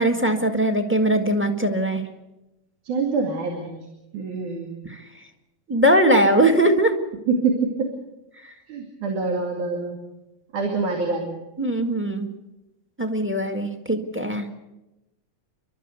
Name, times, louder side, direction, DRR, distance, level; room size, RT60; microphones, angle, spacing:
voice 1, 0.0-2.0 4.8-5.0 5.7-7.0 11.6-12.3 13.0-14.5, right 1 dB, 5° right, 6 dB, 0.9 m, -20 dB
voice 2, 2.9-3.8 4.1-4.7 7.3-7.9 8.7-10.0 10.5-11.4, right 4 dB, 80° right, 2 dB, 3.9 m, -25 dB
30.0 x 12.5 x 8.3 m, 0.96 s
omnidirectional pair, 3.4 m